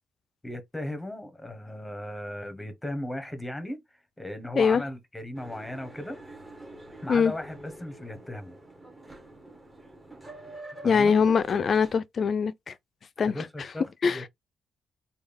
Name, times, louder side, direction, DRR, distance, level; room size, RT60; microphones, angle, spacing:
voice 1, 0.4-6.2 7.0-8.6 10.8-11.1 13.2-14.3, left 1 dB, 10° left, 1.0 m, -37 dB
Boat Water vehicle, 5.3-12.0, right 2 dB, 15° right, 1.1 m, -46 dB
voice 2, 10.8-12.7 13.2-13.3 14.0-14.2, left 6 dB, 50° left, 0.4 m, -22 dB
3.5 x 2.3 x 3.3 m
cardioid pair, 90°, 0 cm